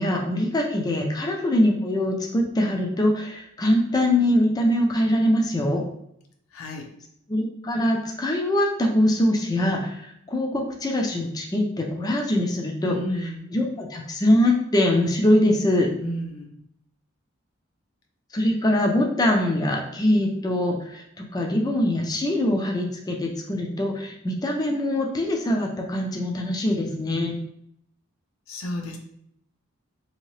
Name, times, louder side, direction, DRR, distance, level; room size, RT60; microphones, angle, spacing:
voice 1, 0.0-5.8 7.3-13.0 13.5-15.9 18.3-27.4, left 1 dB, 20° left, 1 dB, 0.3 m, -23 dB
voice 2, 6.5-6.9 12.8-13.5 16.0-16.6 28.5-29.0, left 1 dB, 85° left, 2 dB, 0.6 m, -32 dB
2.8 x 2.7 x 3.1 m, 0.72 s
head